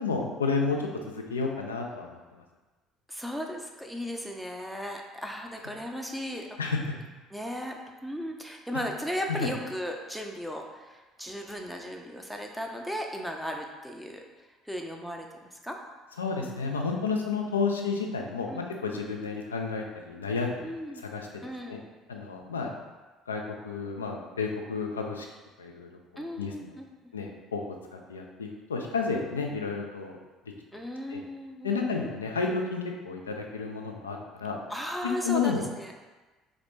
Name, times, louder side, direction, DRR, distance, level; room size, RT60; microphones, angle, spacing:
voice 1, 0.0-2.2 6.6-6.8 9.3-9.5 16.2-20.7 21.1-21.3 21.7-21.8 22.1-22.7 23.3-25.3 25.6-26.7 27.1-27.7 28.1-30.2 31.1-31.2 31.6-34.6 35.2-35.6, left 4 dB, 80° left, 1 dB, 0.3 m, -31 dB
voice 2, 3.1-6.6 7.3-14.2 14.6-15.8 18.5-18.6 20.6-21.0 21.4-21.8 26.2-26.9 30.7-32.0 34.7-35.9, equal, ahead, 1 dB, 0.4 m, -36 dB
3.2 x 2.4 x 3.4 m, 1.2 s
figure-of-eight pair, 55°, 0 cm